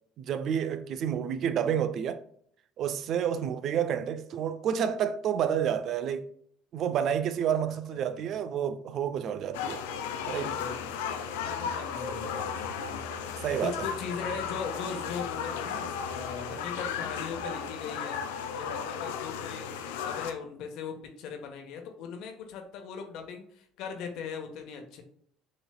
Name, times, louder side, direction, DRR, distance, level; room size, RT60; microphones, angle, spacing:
voice 1, 0.2-2.2 2.8-6.3 6.7-9.8 10.3-10.6 13.4-13.7, right 8 dB, 55° right, 0.4 m, -29 dB
voice 2, 7.4-8.3 10.5-13.0 13.3-25.0, left 6 dB, 65° left, 1.1 m, -40 dB
sound 1, 9.5-20.3, left 7 dB, 85° left, 0.5 m, -35 dB
6.5 x 3.1 x 2.2 m
supercardioid pair, 80°, 0 cm